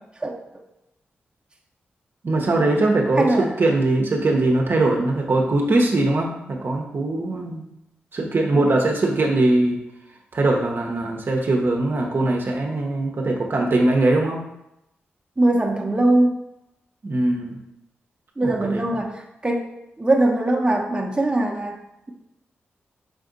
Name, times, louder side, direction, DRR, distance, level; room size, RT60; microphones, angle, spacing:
voice 1, 0.2-0.6 3.2-3.6 15.4-16.4 18.4-19.7 20.0-21.8, right 2 dB, 20° right, 0 dB, 0.8 m, -21 dB
voice 2, 2.2-7.7 8.1-9.8 10.3-14.4 17.0-17.6 18.4-18.8, right 2 dB, 55° right, 0 dB, 0.8 m, -21 dB
5.2 x 2.5 x 3.8 m, 0.84 s
supercardioid pair, 45°, 4 cm